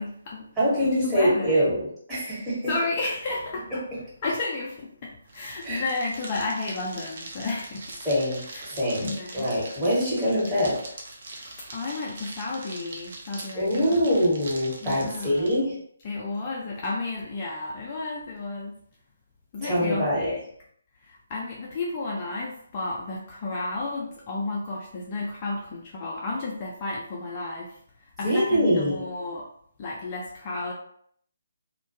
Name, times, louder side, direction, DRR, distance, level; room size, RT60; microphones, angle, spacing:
voice 1, 0.0-0.5 0.8-1.7 2.7-3.8 4.2-7.9 8.5-8.6 9.0-9.5 11.4-14.0 14.8-15.5 16.0-18.8 19.5-20.4 21.0-29.5 29.8-30.7, left 3 dB, 30° left, -3 dB, 0.4 m, -32 dB
voice 2, 0.6-2.7 5.6-5.8 8.0-10.8 13.5-15.7 19.6-20.3 28.2-29.0, equal, 10° right, -10 dB, 1.1 m, -24 dB
sound 1, 5.2-15.6, right 2 dB, 45° right, 0.5 m, -42 dB
2.1 x 2.1 x 2.7 m, 0.65 s
figure-of-eight pair, 140°, 0 cm